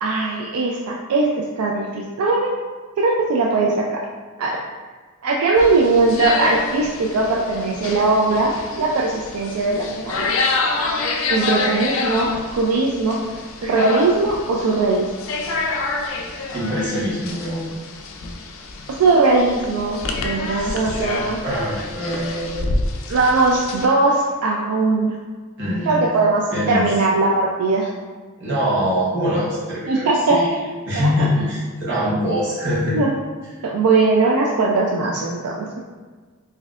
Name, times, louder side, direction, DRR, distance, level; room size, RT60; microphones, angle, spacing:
voice 1, 0.0-2.6 3.0-4.0 4.4-4.6 5.2-10.2 11.3-13.2 13.6-15.1 18.9-21.4 23.1-25.1 25.9-27.9 29.8-30.4 30.9-31.3 32.9-33.2 33.6-35.8, right 3 dB, 85° right, -2 dB, 0.4 m, -19 dB
sound 1, 5.6-23.9, left 3 dB, 60° left, 0.4 m, -28 dB
voice 2, 16.5-17.7 20.5-21.0 21.4-22.7 25.6-26.1 26.5-26.9 28.4-30.5 30.9-33.0, equal, 55° right, -7 dB, 1.1 m, -23 dB
4.1 x 2.6 x 2.4 m, 1.5 s
head